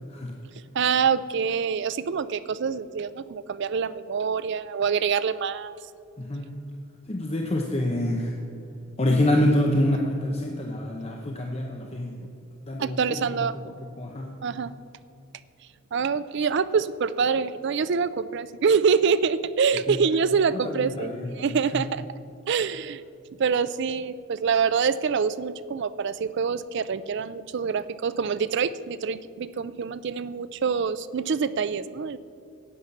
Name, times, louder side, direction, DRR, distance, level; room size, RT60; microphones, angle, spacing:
voice 1, 0.7-5.7 12.8-13.7 14.4-14.7 15.9-22.0 22.5-23.0 23.4-32.2, right 6 dB, 55° right, 15 dB, 0.4 m, -25 dB
voice 2, 6.2-6.5 7.1-8.3 9.0-12.1 12.7-13.0 14.0-14.3 19.9-20.0 20.5-21.3, left 1 dB, 30° left, 1 dB, 0.8 m, -26 dB
11.0 x 8.1 x 7.1 m, 2.6 s
head